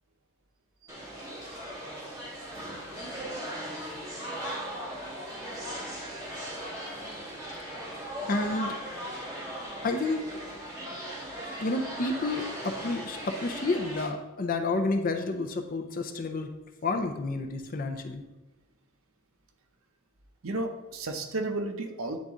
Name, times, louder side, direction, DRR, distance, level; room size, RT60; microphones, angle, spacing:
sound 1, 0.9-14.1, equal, 15° right, 1.6 m, -38 dB
voice 1, 8.3-10.4 11.6-16.5 16.8-18.2, left 3 dB, 40° left, 5 dB, 0.5 m, -30 dB
voice 2, 20.4-22.2, right 2 dB, 75° right, 6 dB, 0.7 m, -33 dB
9.5 x 3.9 x 3.6 m, 1.1 s
head